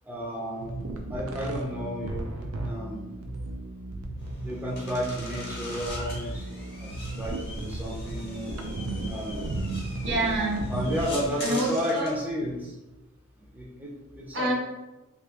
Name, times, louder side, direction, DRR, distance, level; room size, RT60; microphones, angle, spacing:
voice 1, 0.1-3.1 4.4-6.9 7.2-8.5 9.1-9.5 10.7-12.7 13.5-14.5, equal, 10° right, -5 dB, 0.6 m, -32 dB
sound 1, 0.6-11.3, right 2 dB, 90° right, 0.5 m, -35 dB
sound 2, 4.2-12.2, left 2 dB, 50° left, 0.9 m, -42 dB
voice 2, 10.0-10.6 11.4-12.1 14.3-14.5, right 2 dB, 55° right, -1 dB, 0.9 m, -27 dB
2.9 x 2.9 x 3.4 m, 1.0 s
head